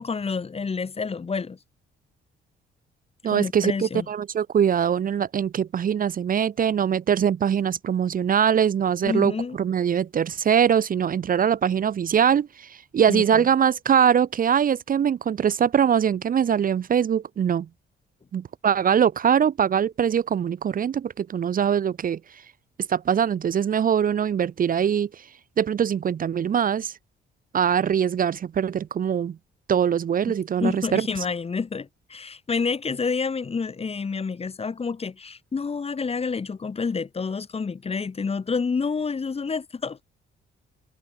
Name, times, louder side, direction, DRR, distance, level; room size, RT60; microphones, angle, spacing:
voice 1, 0.0-1.6 3.3-4.1 9.0-9.6 13.1-13.4 30.6-40.0, left 5 dB, 30° left, 1.4 m, -28 dB
voice 2, 3.2-17.7 18.3-22.2 22.9-25.2 25.6-26.9 27.5-29.4 29.7-31.1, right 8 dB, 45° right, 0.7 m, -22 dB
cardioid pair, 90°, 20 cm